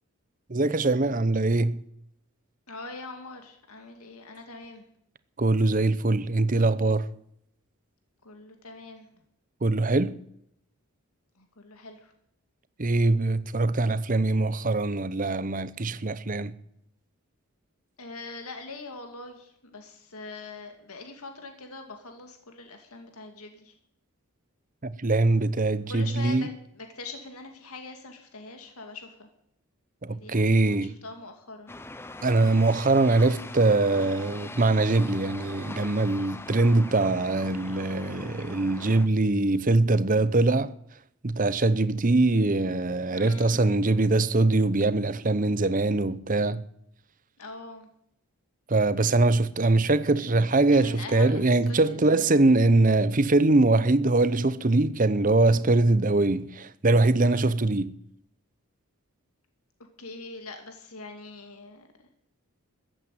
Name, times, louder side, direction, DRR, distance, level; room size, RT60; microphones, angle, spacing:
voice 1, 0.5-1.8 5.4-7.1 9.6-10.1 12.8-16.5 24.8-26.5 30.0-30.9 32.2-40.7 41.2-46.6 48.7-57.9, right 2 dB, 35° right, 0.8 m, -23 dB
voice 2, 2.7-4.8 8.2-9.1 11.4-12.1 18.0-23.7 25.9-26.5 26.8-29.3 30.1-31.7 43.1-43.7 47.4-47.9 50.7-52.2 57.2-57.5 60.0-61.9, left 3 dB, 80° left, 2.3 m, -43 dB
sound 1, 31.7-39.1, left 2 dB, 10° left, 0.7 m, -41 dB
14.5 x 9.0 x 9.1 m
head